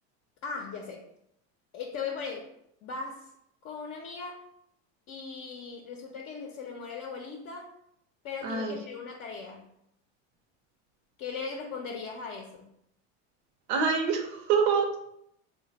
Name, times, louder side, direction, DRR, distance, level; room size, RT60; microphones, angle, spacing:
voice 1, 0.4-1.0 1.7-2.5 2.8-3.3 3.6-4.4 5.1-7.7 8.2-9.7 11.2-12.7, left 5 dB, 45° left, 0 dB, 0.5 m, -38 dB
voice 2, 8.4-8.8 13.7-15.0, right 5 dB, 70° right, 4 dB, 0.7 m, -26 dB
3.2 x 2.2 x 3.9 m, 0.76 s
supercardioid pair, 120°, 33 cm